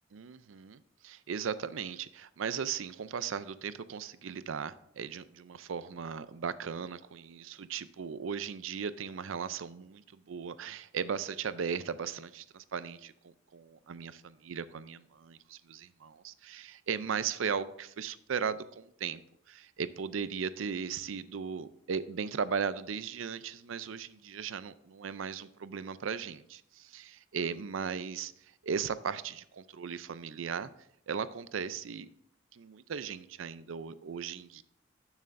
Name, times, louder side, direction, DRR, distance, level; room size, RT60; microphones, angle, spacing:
voice 1, 0.1-19.2 19.5-30.7 31.1-32.1 32.5-34.6, right 6 dB, 75° right, 15 dB, 0.5 m, -37 dB
12.0 x 7.2 x 2.6 m, 0.73 s
head